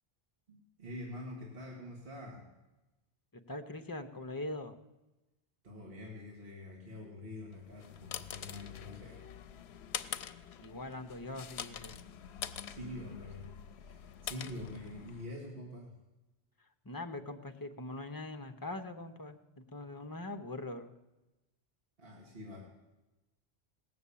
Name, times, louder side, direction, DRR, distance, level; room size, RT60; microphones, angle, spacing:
voice 1, 0.5-2.5 5.6-9.2 12.7-16.0 22.0-22.6, left 1 dB, 60° right, -2 dB, 2.1 m, -46 dB
voice 2, 3.5-4.7 10.6-12.0 16.8-20.9, left 2 dB, 20° left, 7 dB, 0.7 m, -42 dB
sound 1, 7.6-15.4, left 9 dB, 70° left, 0.8 m, -45 dB
17.5 x 6.9 x 8.5 m, 1.0 s
omnidirectional pair, 1.1 m